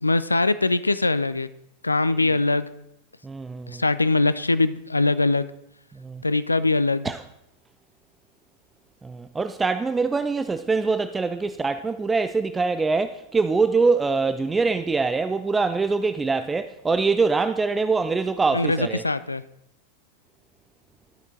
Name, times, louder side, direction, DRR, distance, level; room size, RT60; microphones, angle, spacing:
voice 1, 0.0-1.5 1.8-2.7 3.7-5.5 6.2-7.1 18.5-19.4, left 2 dB, 80° left, 0.3 m, -22 dB
voice 2, 3.2-3.8 6.0-6.2 7.0-7.2 9.0-19.0, right 4 dB, 15° right, 0.3 m, -24 dB
12.5 x 6.1 x 3.7 m
figure-of-eight pair, 90°, 0 cm